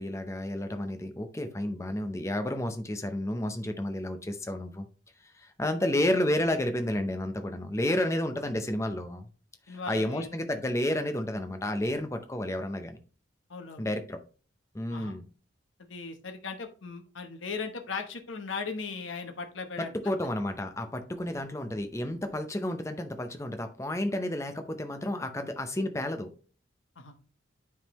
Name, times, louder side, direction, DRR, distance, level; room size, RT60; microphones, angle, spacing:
voice 1, 0.0-4.9 5.3-9.3 9.7-13.0 13.8-14.2 14.7-15.3 19.8-26.3, left 1 dB, 15° left, 8 dB, 0.6 m, -31 dB
voice 2, 9.7-10.3 13.5-13.9 14.9-15.1 15.8-20.1 27.0-27.1, left 4 dB, 90° left, 6 dB, 1.0 m, -38 dB
10.0 x 3.7 x 3.0 m, 0.39 s
head